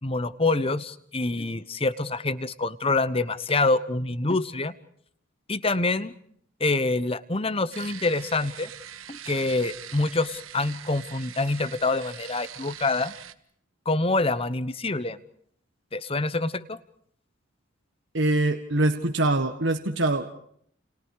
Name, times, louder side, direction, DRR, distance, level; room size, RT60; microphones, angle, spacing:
voice 1, 0.0-4.7 5.5-6.1 6.6-8.7 9.1-13.1 13.8-15.2 15.9-16.8, left 3 dB, 30° left, 15 dB, 1.1 m, -26 dB
sound 1, 7.7-13.3, right 10 dB, 90° right, 1.4 m, -43 dB
voice 2, 18.1-20.3, right 2 dB, 65° right, 5 dB, 1.6 m, -24 dB
30.0 x 30.0 x 4.9 m, 0.65 s
head